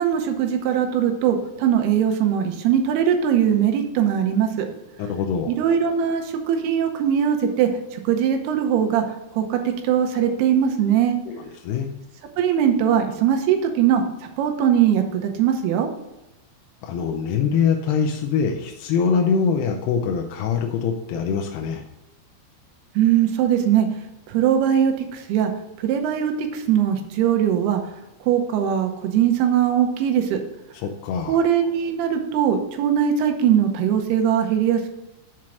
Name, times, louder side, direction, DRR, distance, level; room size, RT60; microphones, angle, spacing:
voice 1, 0.0-4.7 5.5-9.0 9.3-11.2 12.4-15.9 23.0-23.9 24.3-25.5 25.8-27.8 28.2-30.4 31.3-34.9, right 9 dB, 80° right, 4 dB, 2.9 m, -21 dB
voice 2, 5.0-5.5 11.3-11.9 16.8-21.8 30.7-31.4, left 6 dB, 90° left, 2 dB, 2.7 m, -23 dB
7.2 x 4.6 x 6.3 m, 0.93 s
omnidirectional pair, 4.7 m